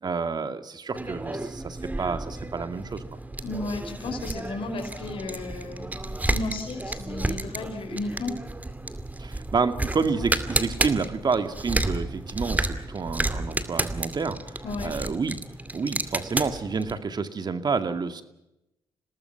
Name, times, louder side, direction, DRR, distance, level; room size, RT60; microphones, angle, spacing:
voice 1, 0.0-3.0 9.2-15.4 15.7-18.2, right 5 dB, 45° right, 9 dB, 2.2 m, -29 dB
sound 1, 0.9-17.0, right 2 dB, 15° right, 2.4 m, -31 dB
voice 2, 3.4-8.3 14.6-14.9, left 2 dB, 70° left, 3 dB, 5.0 m, -34 dB
26.5 x 19.0 x 5.9 m, 0.89 s
supercardioid pair, 55°, 10 cm